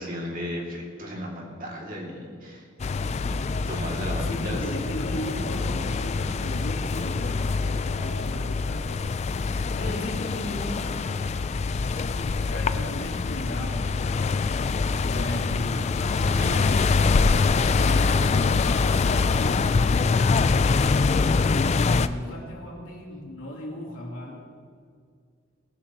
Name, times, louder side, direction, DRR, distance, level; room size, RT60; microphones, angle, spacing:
voice 1, 0.0-2.6 2.9-4.6 16.2-16.7, equal, 45° right, -2 dB, 2.4 m, -35 dB
sound 1, 2.8-22.1, left 4 dB, 35° left, 0.3 m, -24 dB
voice 2, 4.1-8.9 9.7-14.4 14.6-16.0 16.6-16.9 17.8-20.2 21.0-24.5, left 1 dB, 80° left, -3 dB, 3.1 m, -36 dB
20.5 x 11.5 x 3.0 m, 2.1 s
head